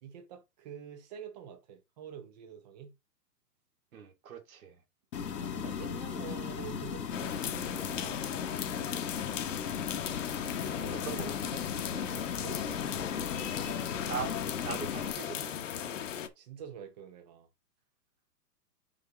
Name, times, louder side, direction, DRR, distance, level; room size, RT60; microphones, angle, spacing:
voice 1, 0.0-2.9 5.3-9.5 10.5-11.1 11.9-13.0 13.3-13.8 15.8-17.5, right 8 dB, 25° right, 1.1 m, -48 dB
voice 2, 3.9-4.8 10.9-11.6 14.1-14.3 14.6-15.7, right 7 dB, 60° right, 2.9 m, -41 dB
sound 1, 5.1-15.1, left 7 dB, 85° left, 1.4 m, -37 dB
sound 2, 7.1-16.3, left 9 dB, 50° left, 1.1 m, -37 dB
6.5 x 4.6 x 3.7 m
hypercardioid pair, 155°, 48 cm